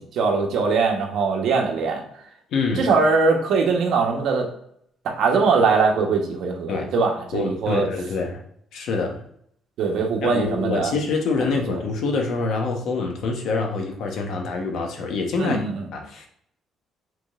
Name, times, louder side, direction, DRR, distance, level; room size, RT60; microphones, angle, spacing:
voice 1, 0.1-2.0 2.8-4.5 5.0-7.9 9.8-10.9 11.7-11.8 15.4-15.9, right 4 dB, 70° right, 2 dB, 1.1 m, -21 dB
voice 2, 2.5-2.9 6.7-6.9 7.3-8.4 8.7-9.2 10.3-15.6 15.9-16.3, left 4 dB, 70° left, 2 dB, 1.0 m, -25 dB
5.1 x 3.9 x 2.5 m, 0.68 s
cardioid pair, 130°, 0 cm